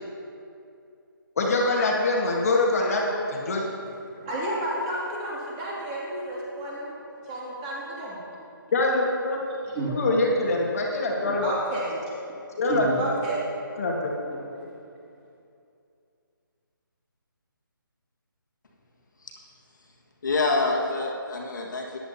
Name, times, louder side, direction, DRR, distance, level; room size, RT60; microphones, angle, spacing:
voice 1, 1.4-3.7 8.7-9.4 9.9-11.5 12.6-12.9 13.8-14.1, left 2 dB, 40° left, -1 dB, 1.5 m, -24 dB
voice 2, 4.0-7.0 7.2-8.2 9.6-10.0 11.2-11.9 12.7-13.4 14.2-14.7, right 1 dB, 20° right, -5 dB, 2.4 m, -32 dB
voice 3, 20.2-22.0, left 3 dB, 55° left, -1 dB, 1.7 m, -26 dB
14.0 x 10.5 x 2.8 m, 2.6 s
figure-of-eight pair, 155°, 12 cm